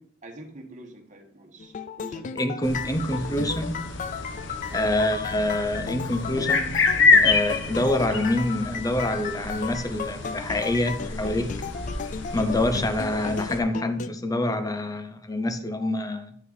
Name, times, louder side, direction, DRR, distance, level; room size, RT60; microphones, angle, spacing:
voice 1, 0.0-2.8 3.1-3.4 4.7-4.9, right 1 dB, 40° right, 1.4 m, -46 dB
sound 1, 1.6-14.1, left 6 dB, 40° left, 0.3 m, -35 dB
voice 2, 2.4-3.9 4.7-6.8 7.2-11.5 12.3-16.4, left 1 dB, 20° left, 0.7 m, -26 dB
sound 2, 2.6-13.6, left 4 dB, 65° left, 1.0 m, -27 dB
9.5 x 5.6 x 4.0 m
head